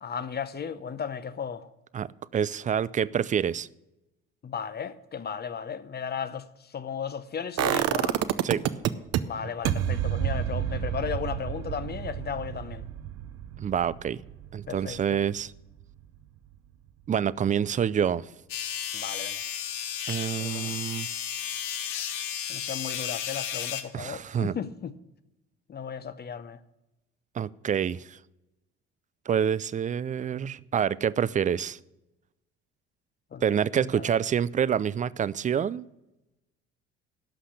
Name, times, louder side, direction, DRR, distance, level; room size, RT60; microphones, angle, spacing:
voice 1, 0.0-1.7 4.4-8.2 9.2-12.9 14.7-15.2 18.9-19.4 20.4-20.8 22.5-24.9 25.7-26.6 33.3-34.1, left 7 dB, 35° left, 0.7 m, -35 dB
voice 2, 1.9-3.7 8.4-8.6 13.6-14.2 14.5-15.5 17.1-18.3 20.1-21.1 23.9-24.5 27.4-28.2 29.3-31.8 33.4-35.9, right 8 dB, 25° right, 0.4 m, -27 dB
sound 1, 7.6-9.2 9.6-15.5 15.8-15.9, right 11 dB, 55° right, 0.7 m, -29 dB
sound 2, 18.5-23.8, left 9 dB, 75° left, 1.1 m, -33 dB
11.5 x 5.7 x 8.4 m
hypercardioid pair, 65°, 30 cm